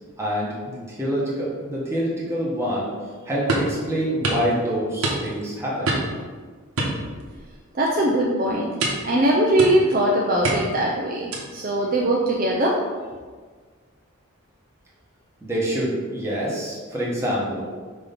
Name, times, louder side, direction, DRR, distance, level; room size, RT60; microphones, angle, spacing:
voice 1, 0.2-2.9 3.3-6.0 15.4-17.6, equal, 10° right, -6 dB, 1.2 m, -26 dB
sound 1, 3.5-3.8 4.2-4.5 5.0-5.5 5.9-6.2 6.8-7.5 7.9-8.1 8.8-9.1 9.6-10.0 10.4-10.8 11.3-11.6, right 2 dB, 90° right, 1.1 m, -26 dB
voice 2, 7.8-8.7 9.0-12.8, right 1 dB, 40° right, -2 dB, 0.5 m, -21 dB
6.1 x 2.9 x 5.2 m, 1.5 s
head